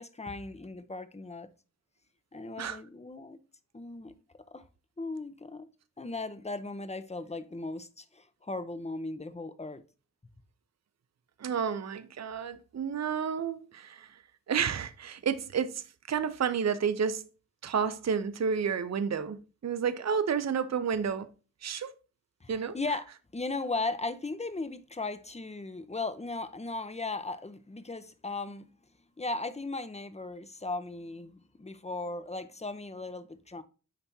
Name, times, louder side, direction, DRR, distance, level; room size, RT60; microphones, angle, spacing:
voice 1, 0.0-1.5 2.3-3.4 3.7-4.1 4.5-4.7 5.0-5.7 6.0-9.8 22.4-28.7 29.2-33.6, left 3 dB, 20° left, 0.7 m, -37 dB
voice 2, 11.4-14.2 14.5-17.3 17.6-21.3 21.6-21.9 22.5-22.8, right 7 dB, 55° right, 0.5 m, -31 dB
10.0 x 3.4 x 2.7 m
wide cardioid pair, 60°, 32 cm